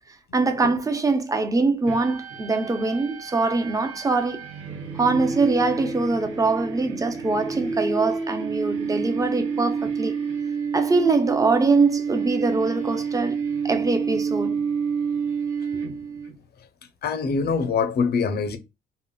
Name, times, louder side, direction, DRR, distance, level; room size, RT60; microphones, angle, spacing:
voice 1, 0.3-4.5 4.9-10.2 10.7-13.4 13.6-14.7, right 3 dB, 15° right, 0.5 m, -23 dB
sound 1, 1.9-16.3, right 6 dB, 75° right, 0.8 m, -29 dB
voice 2, 17.0-18.6, left 5 dB, 55° left, 0.6 m, -24 dB
3.7 x 2.0 x 2.3 m
cardioid pair, 90°, 20 cm